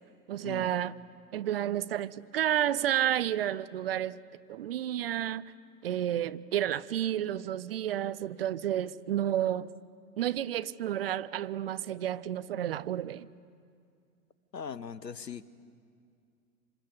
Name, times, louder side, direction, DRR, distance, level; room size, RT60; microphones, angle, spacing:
voice 1, 0.3-0.9 1.3-4.2 4.5-5.5 5.8-9.7 10.2-13.3, right 11 dB, 40° right, 0.5 m, -31 dB
voice 2, 14.5-15.4, left 7 dB, 85° left, 1.0 m, -40 dB
27.0 x 26.0 x 7.1 m
figure-of-eight pair, 110°, 48 cm